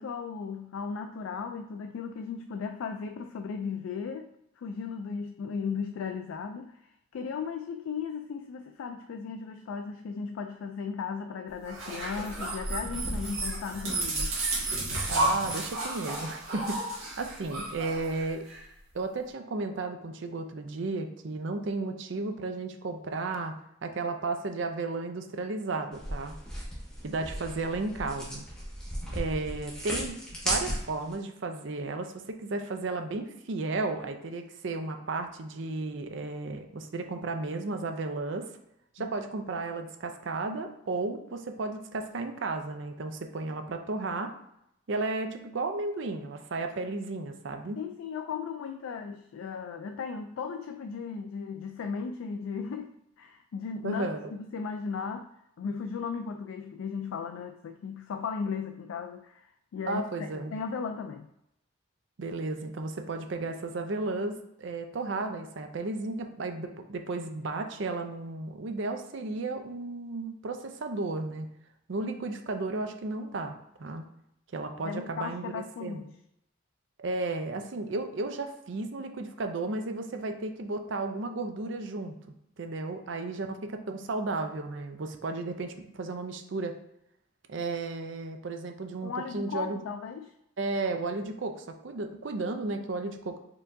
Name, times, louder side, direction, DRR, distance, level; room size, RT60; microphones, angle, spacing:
voice 1, 0.0-14.4 39.0-39.1 47.8-55.3 55.6-61.3 74.8-76.1 83.1-83.2 89.0-90.3, left 5 dB, 85° left, 5 dB, 0.3 m, -36 dB
sound 1, 11.6-18.6, right 1 dB, 85° right, 1.5 m, -32 dB
voice 2, 15.1-16.8 17.2-18.5 18.9-23.5 23.8-26.3 27.0-28.4 29.1-30.2 30.4-38.5 39.0-44.3 44.9-47.8 53.8-54.3 59.9-60.5 62.2-71.5 71.9-74.0 74.5-76.1 77.0-82.1 82.6-86.8 87.5-89.8 90.6-93.4, right 3 dB, 65° right, 6 dB, 0.5 m, -34 dB
sound 2, 25.9-31.1, equal, 5° left, 1.1 m, -35 dB
4.5 x 3.6 x 2.6 m, 0.79 s
head